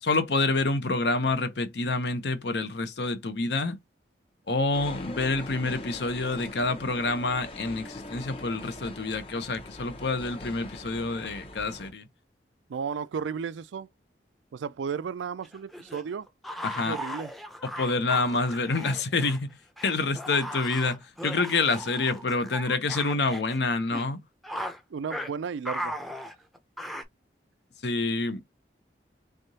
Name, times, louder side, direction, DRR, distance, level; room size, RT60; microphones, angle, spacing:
voice 1, 0.0-3.8 4.5-12.1 16.6-17.0 17.8-19.5 19.8-24.2 27.8-28.4, left 3 dB, 65° left, 0.8 m, -27 dB
sound 1, 4.7-11.9, left 1 dB, 30° left, 1.0 m, -42 dB
voice 2, 12.7-13.9 14.5-16.3 16.8-17.3 24.9-26.0, right 6 dB, 85° right, 0.4 m, -34 dB
sound 2, 15.4-19.4 19.8-23.6 23.9-24.1 24.4-24.8 25.1-25.3 25.7-27.0, equal, ahead, 0.6 m, -37 dB
3.6 x 3.4 x 2.8 m
head